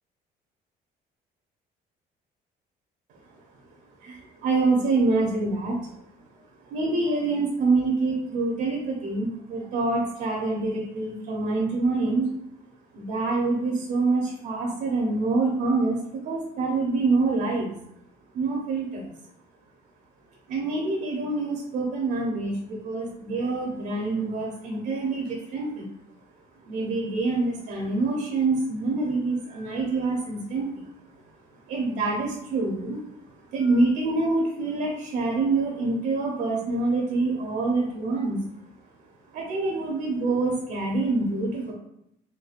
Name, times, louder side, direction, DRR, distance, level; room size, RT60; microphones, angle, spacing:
voice 1, 4.0-6.0 6.7-12.3 12.9-17.7 18.3-19.1 20.5-25.9 26.6-30.9 31.6-33.0 33.5-38.4 39.3-41.7, right 3 dB, 75° right, -2 dB, 0.7 m, -26 dB
4.5 x 2.2 x 2.4 m, 0.78 s
cardioid pair, 110°, 17 cm